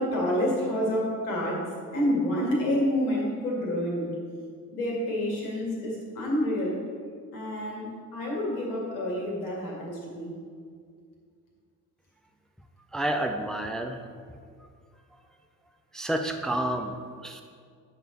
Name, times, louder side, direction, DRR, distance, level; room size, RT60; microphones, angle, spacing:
voice 1, 0.0-4.2 4.7-6.8 7.3-10.4, equal, 70° left, -2 dB, 2.0 m, -28 dB
voice 2, 12.9-14.0 14.6-14.7 15.9-17.4, right 1 dB, ahead, 5 dB, 0.5 m, -30 dB
9.5 x 6.3 x 4.1 m, 2.1 s
figure-of-eight pair, 50°, 46 cm